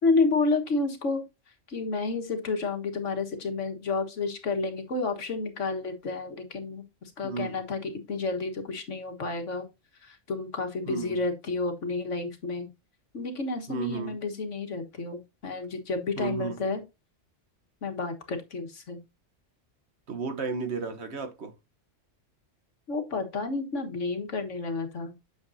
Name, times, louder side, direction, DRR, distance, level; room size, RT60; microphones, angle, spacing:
voice 1, 0.0-1.2 1.7-9.7 10.0-12.7 13.1-16.8 17.8-19.0 22.9-25.1, left 3 dB, 70° left, 1.8 m, -30 dB
voice 2, 7.2-7.6 10.9-11.2 13.7-14.2 16.2-16.6 20.1-21.5, right 5 dB, 60° right, 1.3 m, -33 dB
9.2 x 6.8 x 2.7 m
omnidirectional pair, 1.3 m